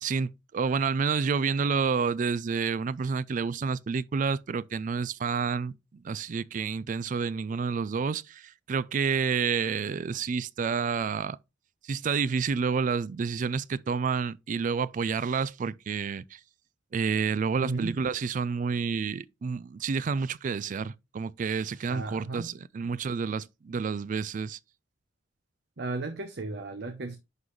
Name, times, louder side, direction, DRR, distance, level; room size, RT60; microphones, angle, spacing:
voice 1, 0.0-5.7 6.0-11.4 11.8-16.4 16.9-24.6, right 5 dB, 40° right, 0.3 m, -29 dB
voice 2, 17.6-18.0 21.9-22.5 25.8-27.2, right 3 dB, 60° right, 0.8 m, -34 dB
11.0 x 3.9 x 3.1 m
head